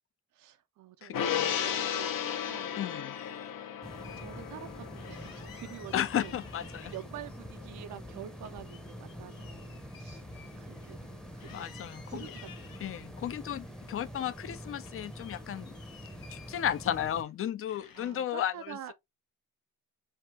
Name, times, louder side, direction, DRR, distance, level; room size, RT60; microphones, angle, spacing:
voice 1, 0.3-2.8 3.3-3.5 4.2-6.3 6.8-13.0 17.9-18.9, right 11 dB, 60° right, 0.5 m, -47 dB
voice 2, 1.0-1.5 2.8-3.1 5.9-6.9 11.5-12.3 12.8-15.7 16.3-18.8, left 10 dB, 40° left, 0.4 m, -34 dB
Gong, 1.1-7.8 8.1-8.2, left 9 dB, 70° left, 0.7 m, -35 dB
sound 1, 1.5-2.6 3.0-4.2 4.6-4.7 5.0-7.4 7.7-11.1 11.4-13.1 13.6-14.5 14.8-17.3 17.7-18.3, left 8 dB, 85° left, 1.1 m, -55 dB
sound 2, 3.8-17.2, equal, ahead, 0.7 m, -46 dB
4.8 x 2.7 x 3.4 m
wide cardioid pair, 170°, 34 cm